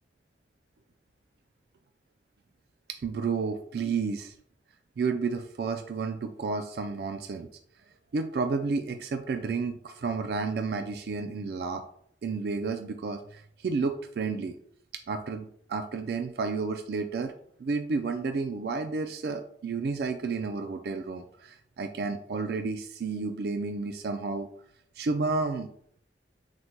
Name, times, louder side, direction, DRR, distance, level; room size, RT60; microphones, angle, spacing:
voice 1, 2.9-4.3 5.0-7.5 8.1-11.8 12.2-14.6 15.1-17.3 17.6-24.5 25.0-25.7, right 4 dB, 60° right, 7 dB, 0.3 m, -31 dB
4.1 x 2.1 x 4.5 m, 0.64 s
head